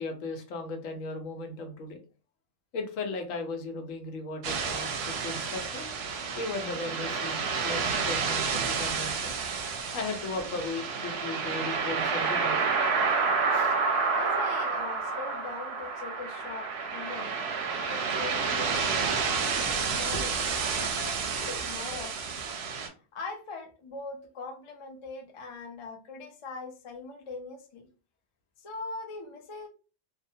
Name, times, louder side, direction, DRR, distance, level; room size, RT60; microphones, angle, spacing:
voice 1, 0.0-2.0 2.7-5.9 6.3-9.3 9.9-12.7 13.5-13.8 20.1-20.2, left 3 dB, 80° left, 5 dB, 1.0 m, -36 dB
sound 1, 4.4-22.9, right 5 dB, 65° right, 0.7 m, -30 dB
voice 2, 14.2-17.3 17.9-20.4 20.7-22.4 23.1-27.9 28.6-29.7, left 3 dB, 55° left, 1 dB, 0.3 m, -41 dB
2.7 x 2.1 x 2.6 m, 0.35 s
omnidirectional pair, 1.4 m